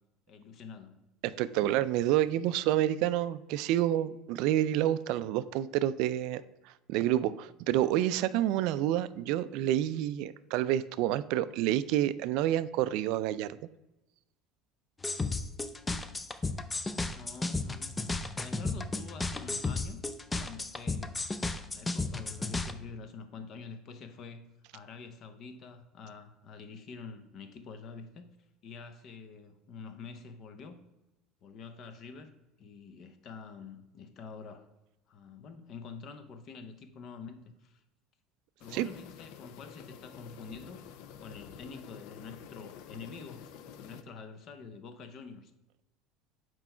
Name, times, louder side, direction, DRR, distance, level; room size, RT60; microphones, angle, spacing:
voice 1, 0.3-1.1 16.9-20.0 20.4-21.3 21.7-24.5 24.7-28.3 28.6-30.8 31.4-32.3 32.6-34.7 35.1-37.8 38.6-40.8 41.2-43.5 43.8-45.5, left 5 dB, 45° left, 9 dB, 0.7 m, -47 dB
voice 2, 1.2-13.6 38.7-38.9, right 12 dB, 65° right, 15 dB, 0.3 m, -29 dB
sound 1, 15.0-22.7, left 3 dB, 15° left, 0.4 m, -33 dB
sound 2, 38.6-44.0, left 8 dB, 70° left, 0.5 m, -49 dB
6.1 x 4.6 x 4.4 m, 0.95 s
cardioid pair, 140°, 0 cm